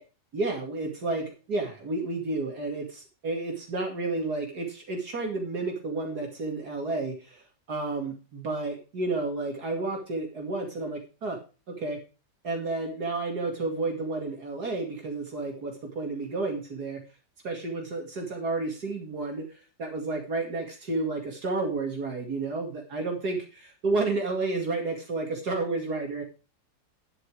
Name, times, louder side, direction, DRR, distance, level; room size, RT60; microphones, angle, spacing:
voice 1, 0.3-7.4 7.7-11.4 11.7-12.0 12.4-17.0 17.4-26.2, right 3 dB, 60° right, 1 dB, 2.8 m, -31 dB
11.0 x 8.2 x 4.8 m, 0.32 s
omnidirectional pair, 1.9 m